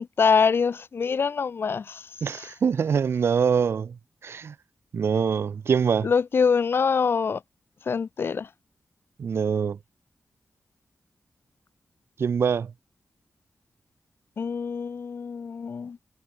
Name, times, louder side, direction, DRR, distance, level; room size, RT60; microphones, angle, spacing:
voice 1, 0.0-2.0 2.3-2.5 6.0-7.4 7.9-8.5 14.4-16.0, left 5 dB, 65° left, 1.6 m, -24 dB
voice 2, 2.2-4.0 4.2-4.5 4.9-6.1 9.2-9.8 12.2-12.7, right 6 dB, 75° right, 1.7 m, -24 dB
wide cardioid pair, 110°, 4 cm